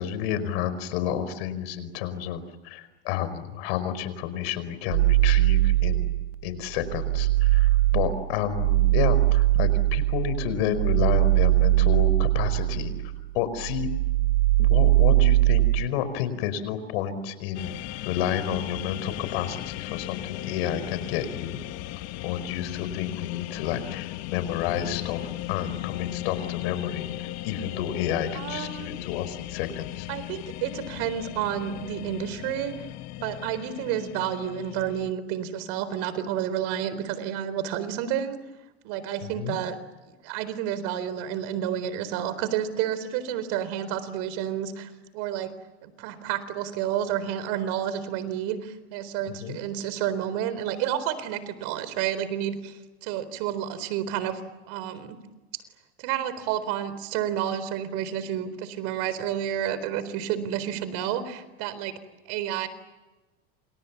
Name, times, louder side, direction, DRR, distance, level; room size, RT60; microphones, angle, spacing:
voice 1, 0.0-6.1 6.4-13.9 14.6-17.7 18.0-21.6 22.2-30.1 39.2-39.6 49.3-49.6, left 9 dB, 70° left, 13 dB, 5.0 m, -30 dB
sound 1, 4.9-6.3 6.7-13.3 13.6-15.9, right 18 dB, 80° right, 0.9 m, -21 dB
sound 2, 17.5-35.1, left 17 dB, 55° left, 1.4 m, -36 dB
voice 2, 28.3-28.9 30.1-32.7 33.2-38.4 38.8-39.8 40.2-45.5 45.8-54.4 54.7-55.2 56.0-61.9 62.3-62.7, right 10 dB, 65° right, 14 dB, 4.1 m, -30 dB
29.0 x 27.5 x 7.2 m, 1.1 s
supercardioid pair, 115°, 31 cm